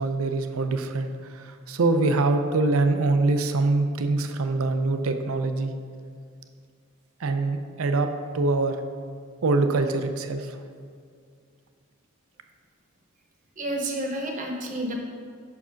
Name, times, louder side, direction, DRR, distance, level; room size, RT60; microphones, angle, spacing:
voice 1, 0.0-5.7 7.2-8.8 9.4-10.6, right 3 dB, 80° right, 7 dB, 0.5 m, -24 dB
voice 2, 13.6-14.9, right 1 dB, 35° right, 1 dB, 0.9 m, -30 dB
6.1 x 4.7 x 5.7 m, 2.2 s
head